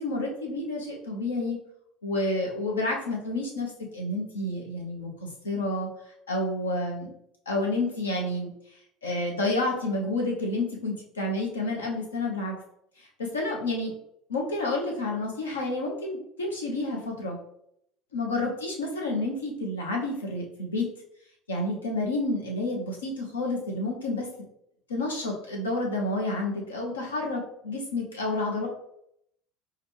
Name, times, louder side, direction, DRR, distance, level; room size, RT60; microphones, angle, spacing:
voice 1, 0.0-1.6 2.0-5.9 6.3-7.1 7.5-8.5 9.0-12.6 13.2-13.9 14.3-17.4 18.1-20.8 21.5-24.3 24.9-28.7, left 2 dB, 75° left, -1 dB, 0.8 m, -29 dB
4.9 x 2.3 x 3.2 m, 0.75 s
figure-of-eight pair, 65°, 0 cm